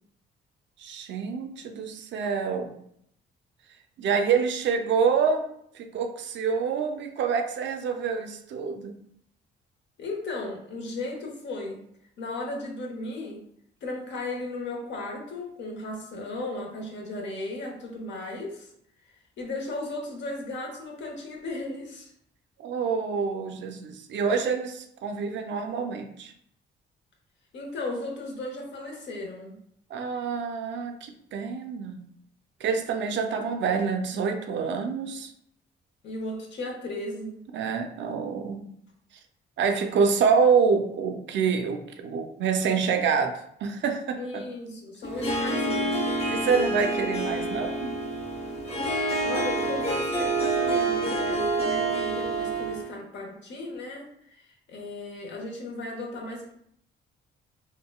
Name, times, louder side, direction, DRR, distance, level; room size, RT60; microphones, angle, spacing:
voice 1, 0.8-2.8 4.0-5.5 5.7-9.0 22.6-26.3 29.9-32.0 32.6-35.3 37.5-38.6 39.6-44.4 46.3-48.0, right 6 dB, 65° right, 6 dB, 0.5 m, -27 dB
voice 2, 10.0-11.8 12.2-13.4 13.8-18.7 19.4-22.1 27.5-29.6 36.0-37.4 44.2-46.3 49.2-56.5, left 2 dB, 65° left, 0 dB, 0.9 m, -36 dB
Harp, 45.0-52.9, right 2 dB, 30° left, 0.8 m, -27 dB
3.7 x 2.1 x 2.2 m, 0.70 s
cardioid pair, 90°, 20 cm